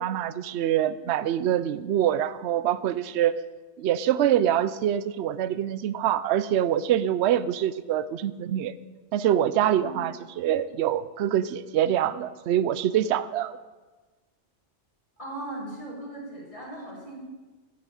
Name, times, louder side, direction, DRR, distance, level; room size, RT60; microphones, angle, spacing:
voice 1, 0.0-3.3 3.8-8.7 9.1-13.5, right 11 dB, 70° right, 15 dB, 0.8 m, -25 dB
voice 2, 9.7-10.1 15.2-17.2, right 1 dB, 25° left, -6 dB, 4.8 m, -38 dB
13.0 x 6.1 x 8.9 m, 1.3 s
omnidirectional pair, 1.2 m